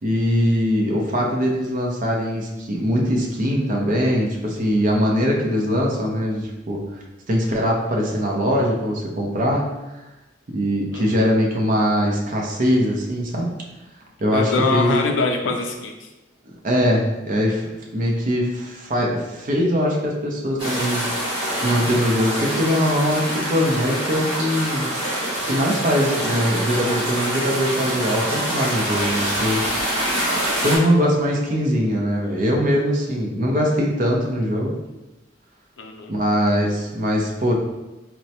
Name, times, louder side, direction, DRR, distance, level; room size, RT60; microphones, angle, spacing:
voice 1, 0.0-6.8 7.3-9.6 10.5-13.5 14.2-15.1 16.6-21.1 21.5-24.9 25.5-29.9 30.6-34.8 36.1-37.5, equal, 45° right, -1 dB, 0.5 m, -21 dB
voice 2, 10.9-11.3 14.3-15.9 35.8-36.1, left 3 dB, 80° left, 3 dB, 0.5 m, -24 dB
sound 1, 20.6-30.8, right 1 dB, 30° right, 1.3 m, -25 dB
4.4 x 2.0 x 2.8 m, 1.0 s
head